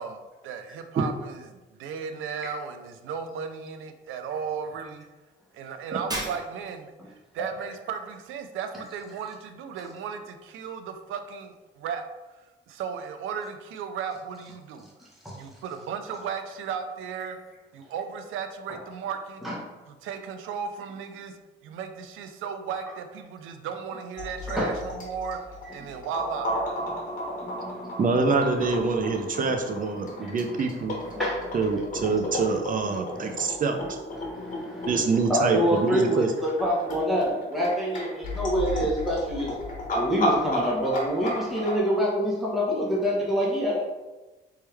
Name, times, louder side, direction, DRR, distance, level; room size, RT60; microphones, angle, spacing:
voice 1, 0.0-5.0 5.5-12.1 12.4-14.9 15.4-17.4 17.7-19.4 20.0-25.4 25.7-26.5, right 6 dB, 85° right, 8 dB, 0.5 m, -35 dB
Shatter, 6.1-6.9, right 1 dB, 20° right, 1.1 m, -34 dB
sound 1, 24.2-41.7, left 1 dB, 40° left, 1.4 m, -33 dB
voice 2, 25.6-26.0 26.7-28.0 28.4-28.7 29.0-30.6 31.0-32.6 32.8-33.5 33.8-39.6 39.9-43.8, equal, ahead, -6 dB, 1.4 m, -28 dB
voice 3, 28.0-31.0 31.5-34.0 34.9-36.3, right 4 dB, 45° right, 5 dB, 0.7 m, -25 dB
4.2 x 3.6 x 3.4 m, 1.2 s
cardioid pair, 90°, 20 cm